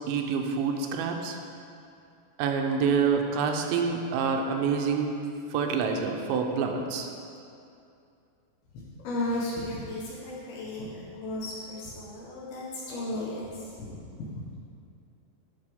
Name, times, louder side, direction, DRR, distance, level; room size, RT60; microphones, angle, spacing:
voice 1, 0.1-1.4 2.4-5.1 5.5-7.1, right 5 dB, 85° right, 3 dB, 2.9 m, -27 dB
voice 2, 8.7-14.0, left 1 dB, 70° left, -6 dB, 2.8 m, -35 dB
11.5 x 6.2 x 3.6 m, 2.5 s
omnidirectional pair, 5.2 m